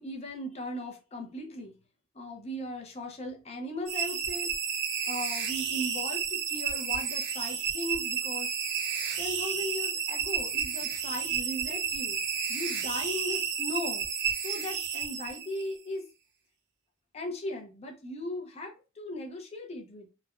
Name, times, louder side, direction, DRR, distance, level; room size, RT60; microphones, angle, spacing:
voice 1, 0.0-1.7 2.1-4.5 5.1-8.9 9.2-12.2 12.5-14.1 14.4-16.0 17.1-20.1, left 1 dB, 30° left, 0.6 m, -38 dB
sound 1, 3.9-15.7, right 7 dB, 55° right, 0.7 m, -31 dB
3.2 x 2.1 x 2.4 m
head